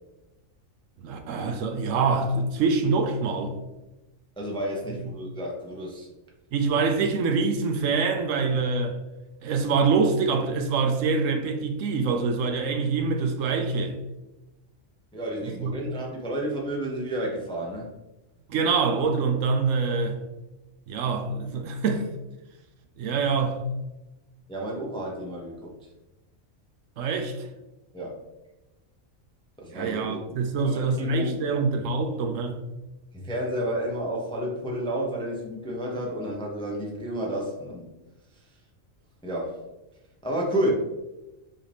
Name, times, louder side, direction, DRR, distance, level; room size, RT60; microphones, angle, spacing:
voice 1, 1.0-3.5 6.5-9.0 9.4-14.0 15.6-15.7 18.5-20.2 20.9-22.1 23.0-23.6 27.0-27.5 29.7-32.6, right 4 dB, 75° right, 0.9 m, -25 dB
voice 2, 4.4-6.1 15.1-17.9 24.5-25.9 27.9-28.2 29.6-31.4 33.1-38.0 38.3-38.6 39.2-39.7 40.2-40.7, right 1 dB, 5° left, 0.5 m, -31 dB
5.6 x 2.6 x 3.3 m
omnidirectional pair, 1.4 m